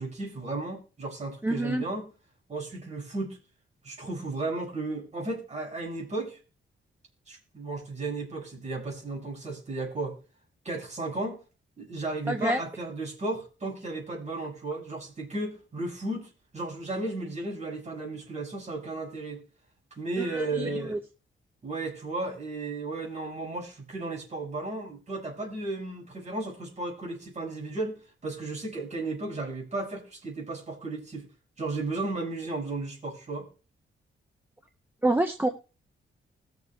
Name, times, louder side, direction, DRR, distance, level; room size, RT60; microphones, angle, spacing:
voice 1, 0.0-2.1 2.5-3.4 3.8-6.4 7.3-10.2 10.6-11.4 11.8-19.4 19.9-20.9 21.6-31.3 31.6-33.5, right 2 dB, 35° right, -1 dB, 5.5 m, -34 dB
voice 2, 1.4-1.8 12.3-12.6 20.2-21.0 35.0-35.5, right 1 dB, 10° right, 5 dB, 0.6 m, -27 dB
20.5 x 7.1 x 2.3 m, 0.34 s
wide cardioid pair, 140°, 21 cm